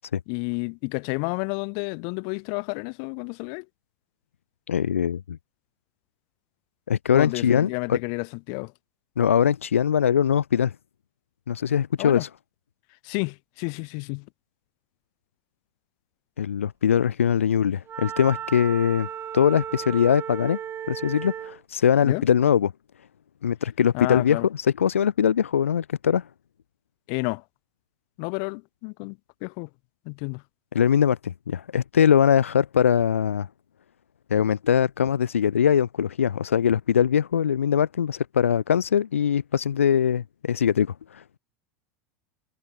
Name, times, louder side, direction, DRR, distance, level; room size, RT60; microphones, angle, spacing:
voice 1, 0.3-3.6 7.1-8.7 12.0-12.2 13.0-14.2 22.0-22.2 23.9-24.5 27.1-27.4 28.2-29.7 30.1-30.4, left 40 dB or more, 60° left, 2.7 m, -30 dB
voice 2, 4.7-5.4 6.9-8.0 9.2-10.7 11.5-12.3 16.4-19.1 19.3-20.6 20.9-22.7 23.4-26.3 30.7-33.5 34.3-41.4, left 8 dB, 90° left, 1.1 m, -22 dB
Wind instrument woodwind instrument, 17.9-21.6, right 9 dB, 35° right, 1.8 m, -35 dB
hypercardioid pair, 85°, 7 cm